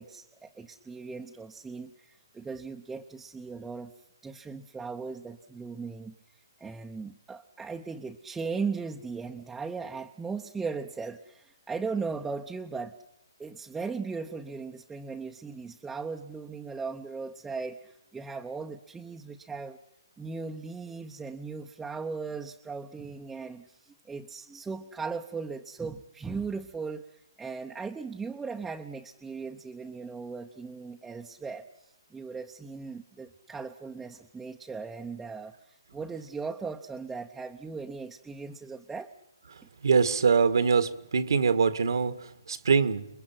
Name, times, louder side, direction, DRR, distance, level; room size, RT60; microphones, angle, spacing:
voice 1, 0.0-3.9 4.2-12.9 13.4-19.8 20.2-39.1, right 4 dB, 5° right, 0.8 m, -38 dB
voice 2, 39.8-43.1, right 5 dB, 70° right, 1.9 m, -24 dB
28.5 x 22.5 x 5.9 m
hypercardioid pair, 155°, 2 cm